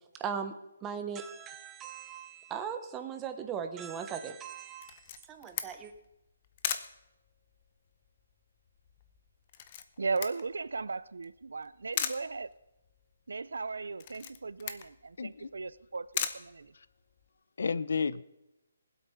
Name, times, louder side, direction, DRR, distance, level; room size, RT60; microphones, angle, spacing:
voice 1, 0.2-0.5 0.8-5.0 5.3-5.9, right 7 dB, 10° right, 0.8 m, -38 dB
Camera, 4.8-17.3, left 9 dB, 25° left, 0.7 m, -40 dB
voice 2, 10.0-12.5 13.3-16.7, right 4 dB, 85° right, 0.6 m, -37 dB
voice 3, 15.2-15.5 16.7-16.9 17.6-18.2, left 5 dB, 60° left, 0.6 m, -32 dB
19.0 x 8.1 x 5.7 m
hypercardioid pair, 175°, 0 cm